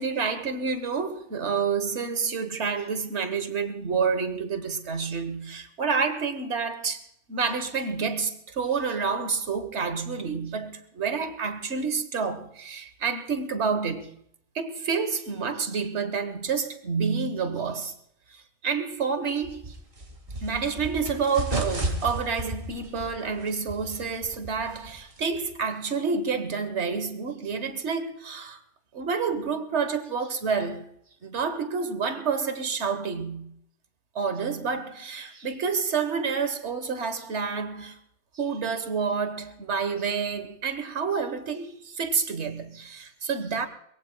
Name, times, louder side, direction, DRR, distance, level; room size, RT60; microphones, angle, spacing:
voice 1, 0.0-7.0 7.3-14.2 14.5-17.9 18.6-19.7 20.4-28.6 28.9-30.9 31.2-33.6 34.1-38.0 38.3-43.7, right 5 dB, 65° right, 1.6 m, -29 dB
sound 1, 19.4-25.6, right 2 dB, 45° right, 2.4 m, -34 dB
23.0 x 21.5 x 2.3 m
omnidirectional pair, 1.2 m